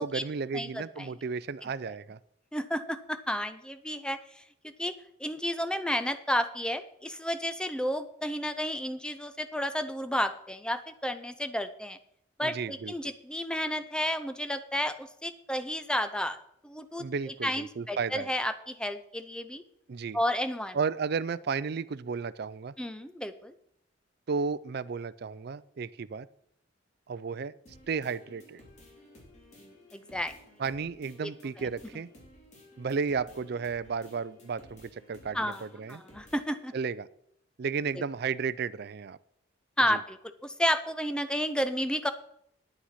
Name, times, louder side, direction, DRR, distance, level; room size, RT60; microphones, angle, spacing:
voice 1, 0.0-2.2 12.4-12.9 17.0-18.3 19.9-20.2 20.7-22.7 24.3-26.3 27.1-27.5 27.9-28.6 30.6-32.1 32.8-36.0 36.7-37.1 37.6-39.2 39.9-40.0, right 5 dB, 55° right, 17 dB, 0.4 m, -33 dB
voice 2, 0.5-1.1 2.5-4.4 4.8-4.9 5.2-12.0 12.4-16.4 16.6-17.0 17.4-19.6 20.1-20.8 22.8-23.5 29.6-30.3 31.2-31.3 35.3-35.6 35.9-36.7 39.8-40.2 40.4-42.1, equal, 5° left, 10 dB, 0.6 m, -31 dB
sound 1, 27.7-36.7, left 1 dB, 35° left, 3.1 m, -55 dB
9.6 x 8.8 x 5.7 m, 0.73 s
head